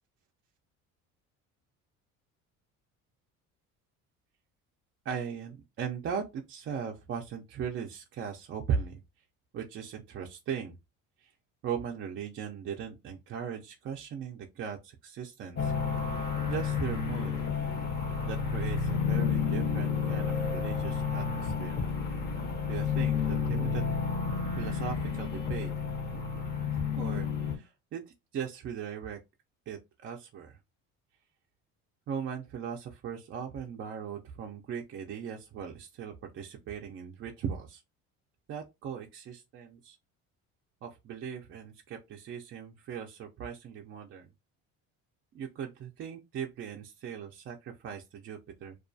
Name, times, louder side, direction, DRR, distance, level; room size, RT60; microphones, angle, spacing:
voice 1, 5.1-9.0 9.5-10.8 11.2-11.3 11.6-15.7 16.5-17.5 18.2-22.1 22.7-23.9 24.5-25.7 27.0-28.0 28.3-29.2 29.7-30.6 32.1-37.8 38.5-40.0 40.8-44.3 45.3-48.8, right 7 dB, 40° right, 0.4 m, -38 dB
sound 1, 15.6-27.5, left 6 dB, 30° left, 0.6 m, -31 dB
2.3 x 2.2 x 2.5 m
cardioid pair, 110°, 31 cm